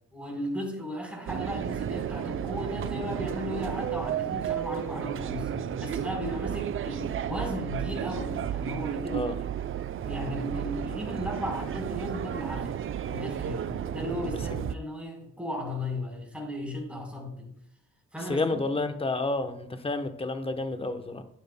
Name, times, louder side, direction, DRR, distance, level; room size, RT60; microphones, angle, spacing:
voice 1, 0.1-9.4 10.0-12.7 13.0-17.5 18.1-18.6, left 1 dB, 5° right, -1 dB, 4.0 m, -36 dB
sound 1, 1.3-14.7, right 9 dB, 45° right, 0.5 m, -33 dB
voice 2, 18.3-21.2, left 2 dB, 20° left, 8 dB, 0.9 m, -30 dB
12.0 x 9.1 x 2.2 m, 0.70 s
cardioid pair, 90°, 30 cm